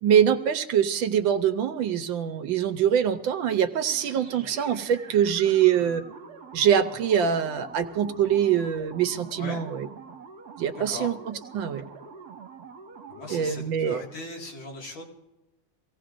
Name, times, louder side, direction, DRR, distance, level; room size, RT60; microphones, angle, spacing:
voice 1, 0.0-6.0 6.5-9.9 10.6-11.8 13.3-14.0, right 9 dB, 75° right, 9 dB, 1.5 m, -24 dB
sound 1, 3.9-13.7, right 5 dB, 50° right, 1.9 m, -45 dB
voice 2, 10.7-11.1 13.1-15.0, left 2 dB, 75° left, -1 dB, 2.9 m, -38 dB
24.5 x 17.0 x 2.5 m, 0.99 s
omnidirectional pair, 2.2 m